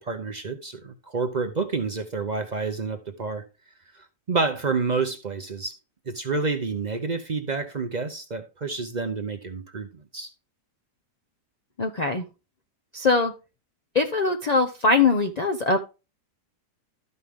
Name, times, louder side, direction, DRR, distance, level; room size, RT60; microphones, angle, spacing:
voice 1, 0.0-3.4 3.9-5.7 6.1-10.3, right 4 dB, 50° right, 0.5 m, -29 dB
voice 2, 11.8-12.3 12.9-13.3 13.9-16.0, left 3 dB, 60° left, 0.4 m, -22 dB
12.5 x 5.4 x 3.5 m
omnidirectional pair, 1.8 m